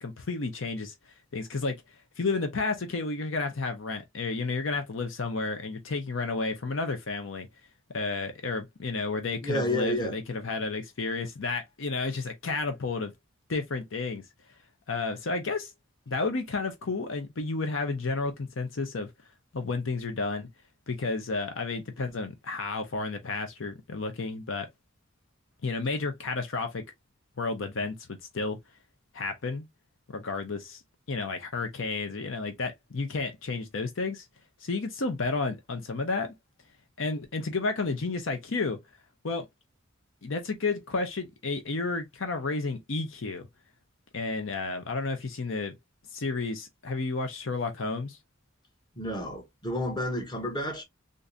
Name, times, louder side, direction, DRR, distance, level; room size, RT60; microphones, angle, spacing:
voice 1, 0.0-0.9 1.3-1.8 2.2-7.5 7.9-13.1 13.5-14.2 14.9-15.7 16.1-19.1 19.5-20.5 20.9-24.7 25.6-26.8 27.4-28.6 29.1-29.6 30.1-30.8 31.1-34.3 34.6-36.3 37.0-38.8 39.2-39.5 40.2-43.5 44.1-45.8 46.1-48.2, left 3 dB, 70° left, 0.7 m, -31 dB
voice 2, 9.4-10.2 49.0-50.8, equal, 20° left, 1.0 m, -30 dB
3.7 x 2.6 x 2.6 m
head